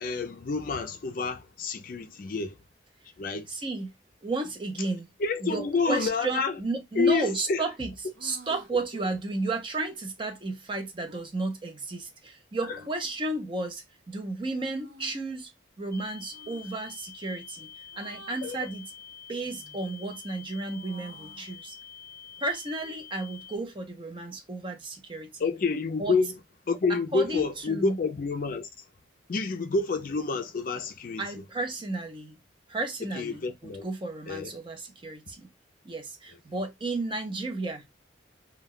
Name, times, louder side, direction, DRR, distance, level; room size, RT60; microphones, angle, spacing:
voice 1, 0.0-2.6 3.2-3.5 5.2-6.5 7.0-7.6 18.4-18.7 25.4-26.3 26.7-28.7 29.3-31.2 33.1-33.9 34.3-34.5, left 4 dB, 45° left, 0.4 m, -28 dB
voice 2, 3.5-3.9 4.2-5.1 5.4-7.9 8.2-15.5 15.8-18.8 19.3-21.8 22.4-25.4 26.0-26.2 26.9-28.0 31.2-32.4 32.7-35.5 35.8-37.8, right 3 dB, 25° right, 0.5 m, -33 dB
sound 1, 5.7-6.4 7.1-7.4 8.1-8.7 11.0-11.2 12.6-13.3 14.6-15.2 16.3-16.7 17.9-18.5 19.4-19.9 20.3-21.6, right 1 dB, 80° right, 0.8 m, -51 dB
sound 2, 15.9-23.6, left 8 dB, 10° left, 0.9 m, -47 dB
2.3 x 2.2 x 3.5 m
head